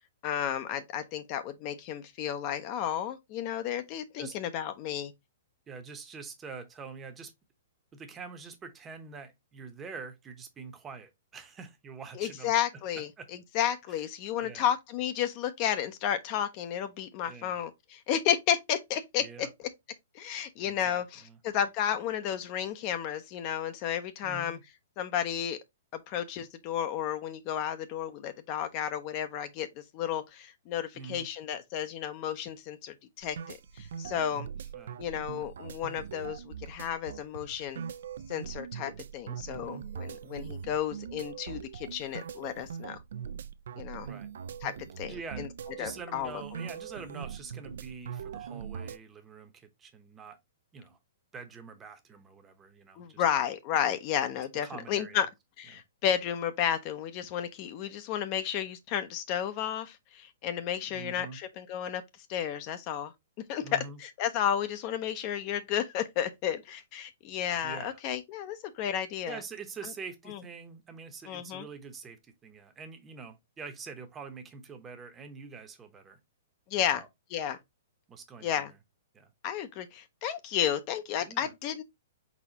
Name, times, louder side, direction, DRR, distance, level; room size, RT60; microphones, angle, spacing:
voice 1, 0.2-5.1 12.2-13.1 13.5-19.5 20.1-24.6 25.0-25.6 25.9-34.5 35.0-37.8 38.3-43.0 43.8-44.1 44.6-45.5 45.8-46.3 53.0-55.3 55.6-62.0 62.3-63.1 63.5-69.4 70.3-70.4 71.3-71.7 76.7-77.0 77.3-77.6 78.4-78.7 79.4-81.8, left 9 dB, 40° left, 0.5 m, -32 dB
voice 2, 5.7-7.3 7.9-13.3 13.9-14.0 14.4-14.7 17.2-17.6 19.2-19.5 20.6-21.4 24.2-24.6 30.9-31.3 34.7-35.0 39.5-39.8 44.0-44.3 45.0-45.5 45.8-50.4 50.7-51.0 51.3-53.2 54.6-55.3 55.7-55.8 60.8-61.4 63.6-64.0 67.6-68.0 69.3-76.2 76.9-77.1 78.1-78.8 79.1-79.3 81.2-81.5, right 5 dB, 15° right, 0.8 m, -45 dB
sound 1, 33.2-49.0, right 7 dB, 70° right, 0.4 m, -42 dB
4.1 x 4.1 x 2.8 m
hypercardioid pair, 140°, 0 cm